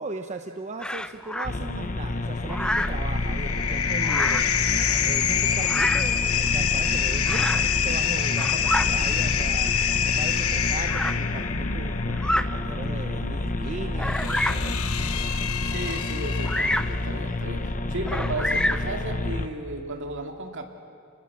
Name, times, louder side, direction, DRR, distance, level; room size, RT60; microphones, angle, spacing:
voice 1, 0.0-4.4 5.0-9.8 10.2-14.9, right 3 dB, 35° right, 5 dB, 0.8 m, -37 dB
Bird vocalization bird call bird song, 0.8-1.5 2.5-3.0 4.0-4.6 5.6-6.1 7.3-7.7 8.2-8.9 9.8-9.9 10.9-11.2 12.1-12.5 13.1-13.2 14.0-14.7 16.4-17.0 18.1-18.9, left 1 dB, 5° left, 0.6 m, -27 dB
sound 1, 1.4-19.5, left 2 dB, 40° left, 1.1 m, -29 dB
sound 2, 2.5-17.1, left 8 dB, 80° left, 1.1 m, -27 dB
voice 2, 15.6-20.6, right 2 dB, 60° right, 4 dB, 2.3 m, -34 dB
29.5 x 20.0 x 7.3 m, 2.4 s
head